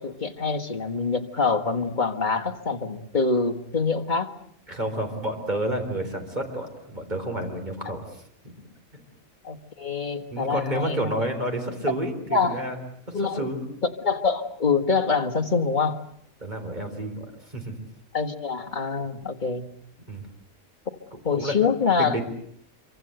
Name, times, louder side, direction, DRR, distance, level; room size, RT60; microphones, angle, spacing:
voice 1, 0.0-4.3 9.4-11.1 12.3-12.6 13.1-13.5 13.8-16.0 18.1-19.7 21.2-22.2, left 4 dB, 35° left, 3 dB, 1.8 m, -25 dB
voice 2, 4.7-8.0 8.4-8.5 10.3-12.8 13.4-13.6 16.4-17.3 17.5-17.7 20.1-20.3 21.1-21.5 22.0-22.2, right 1 dB, 30° right, 4 dB, 4.3 m, -30 dB
26.0 x 25.0 x 7.9 m, 0.67 s
omnidirectional pair, 1.5 m